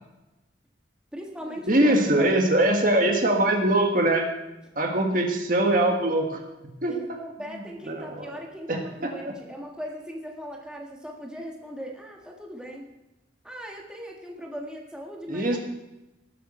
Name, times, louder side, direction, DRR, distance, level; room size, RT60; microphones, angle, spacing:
voice 1, 1.1-2.5 6.9-12.9 13.4-15.6, equal, 5° right, -1 dB, 1.6 m, -39 dB
voice 2, 1.7-4.2 4.7-6.4 6.8-6.9 7.9-8.3 8.7-9.3 15.3-15.6, right 1 dB, 50° right, 3 dB, 1.7 m, -22 dB
19.0 x 8.0 x 4.4 m, 0.98 s
head